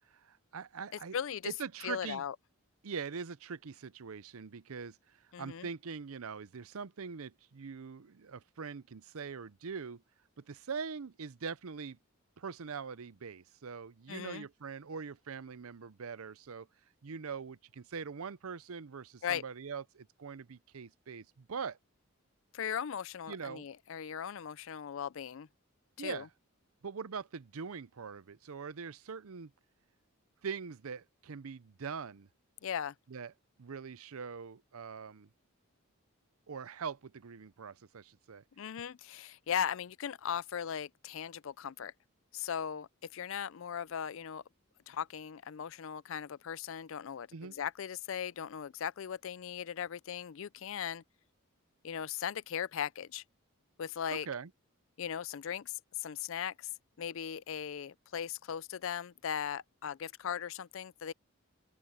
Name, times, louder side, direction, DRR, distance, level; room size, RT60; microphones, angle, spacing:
voice 1, 0.1-1.2 1.4-2.2 2.8-10.0 10.4-12.0 12.4-16.7 17.0-21.8 23.3-23.7 26.0-26.3 26.8-29.5 30.4-32.3 33.1-33.3 33.6-35.3 36.5-38.4 47.3-47.5 54.1-54.5, right 5 dB, 75° right, 0.6 m, -42 dB
voice 2, 1.1-1.5 1.8-2.3 5.3-5.7 14.1-14.5 19.2-19.4 22.5-25.5 26.0-26.3 32.6-32.9 38.6-41.9 42.3-44.4 44.9-51.0 51.8-53.2 53.8-54.3 55.0-56.7 57.0-61.1, left 8 dB, 60° left, 0.4 m, -38 dB
open air
head